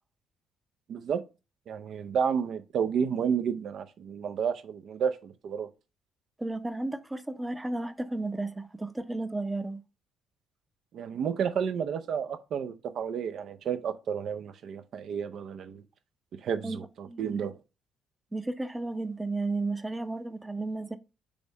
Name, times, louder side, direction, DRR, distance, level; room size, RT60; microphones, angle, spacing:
voice 1, 0.9-1.2 1.7-5.7 10.9-15.8 16.3-17.6, right 7 dB, 55° right, 0.6 m, -31 dB
voice 2, 6.4-9.8 16.6-16.8 17.1-17.5 18.3-21.0, right 2 dB, 15° right, 0.7 m, -33 dB
5.1 x 3.6 x 5.1 m
figure-of-eight pair, 45°, 0 cm